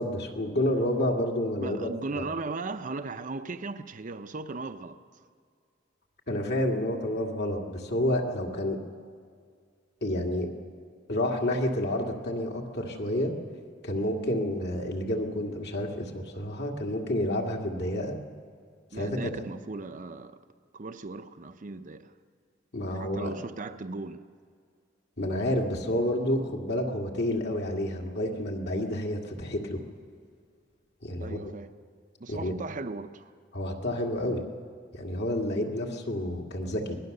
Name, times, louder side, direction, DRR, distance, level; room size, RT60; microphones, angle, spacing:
voice 1, 0.0-1.9 2.2-2.3 6.3-8.8 10.0-10.5 11.1-13.3 13.8-18.2 18.9-19.2 22.7-23.3 25.2-29.8 31.0-31.5 32.3-32.5 33.5-34.4 34.9-37.0, left 1 dB, 60° left, 2.2 m, -29 dB
voice 2, 1.6-5.0 18.9-20.4 20.7-22.2 22.9-24.2 31.2-31.7 32.2-33.3, right 3 dB, 45° right, 0.7 m, -37 dB
24.0 x 18.5 x 6.7 m
head